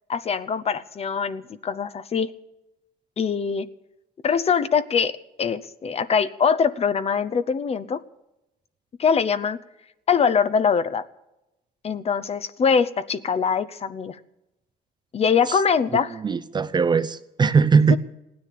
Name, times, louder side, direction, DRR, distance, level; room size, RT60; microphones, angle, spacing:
voice 1, 0.1-2.3 3.2-3.7 4.2-5.1 5.4-8.0 9.0-9.6 10.1-11.0 11.8-14.2 15.1-16.2 17.9-18.0, left 6 dB, 35° left, 14 dB, 0.8 m, -23 dB
voice 2, 16.1-18.0, right 5 dB, 25° right, 13 dB, 0.7 m, -20 dB
17.0 x 9.7 x 8.6 m, 0.91 s
cardioid pair, 110°, 17 cm